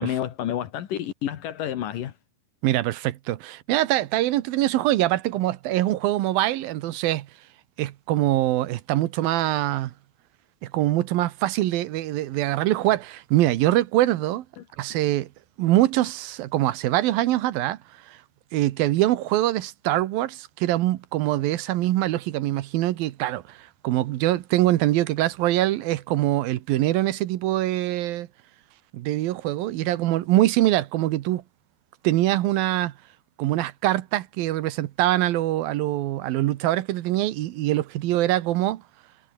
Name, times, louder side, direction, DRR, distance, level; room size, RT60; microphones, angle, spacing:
voice 1, 0.0-2.1 14.6-14.7, left 10 dB, 70° left, 3.1 m, -29 dB
voice 2, 2.6-7.3 7.8-9.9 10.6-14.4 14.8-15.3 15.6-17.8 18.1-18.2 18.5-28.3 28.9-31.4 32.0-32.9 33.4-38.8, right 15 dB, 85° right, 2.8 m, -23 dB
omnidirectional pair, 4.1 m